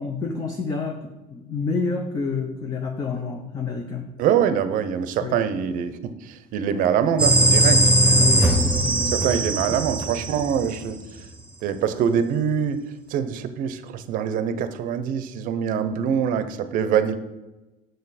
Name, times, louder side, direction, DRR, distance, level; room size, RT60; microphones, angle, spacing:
voice 1, 0.0-4.1 5.2-5.4 8.0-9.0 9.7-9.8, left 4 dB, 25° left, 3 dB, 0.7 m, -29 dB
voice 2, 4.2-7.8 9.1-11.0 11.6-12.8 13.1-17.2, right 8 dB, 60° right, 12 dB, 0.7 m, -24 dB
sound 1, 7.2-10.9, right 1 dB, 10° right, 1.0 m, -19 dB
6.7 x 6.5 x 4.1 m, 1.0 s
cardioid pair, 140°, 16 cm